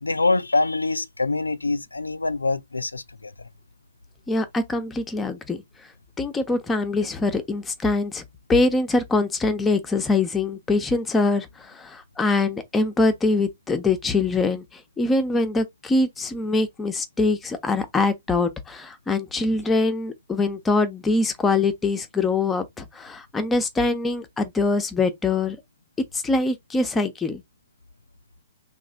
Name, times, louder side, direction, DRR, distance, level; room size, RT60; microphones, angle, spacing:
voice 1, 0.0-3.3, left 3 dB, 85° left, 0.4 m, -24 dB
voice 2, 4.3-5.6 6.2-8.2 8.5-25.6 26.1-27.4, left 3 dB, 15° left, 0.8 m, -23 dB
3.1 x 2.5 x 3.9 m
figure-of-eight pair, 110°, 0 cm